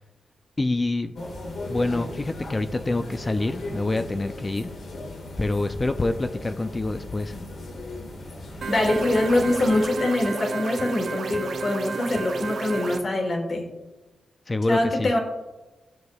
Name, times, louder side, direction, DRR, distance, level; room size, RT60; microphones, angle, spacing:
voice 1, 0.6-1.2 1.7-4.7 5.4-7.4 14.5-15.1, left 2 dB, 25° left, 9 dB, 0.4 m, -26 dB
sound 1, 1.2-9.8, left 2 dB, 75° left, 1.7 m, -37 dB
sound 2, 8.6-13.0, right 4 dB, 75° right, 0.7 m, -31 dB
voice 2, 8.7-13.7 14.7-15.2, left 2 dB, 50° left, 2 dB, 1.5 m, -24 dB
12.0 x 6.4 x 2.3 m, 1.1 s
cardioid pair, 90°, 0 cm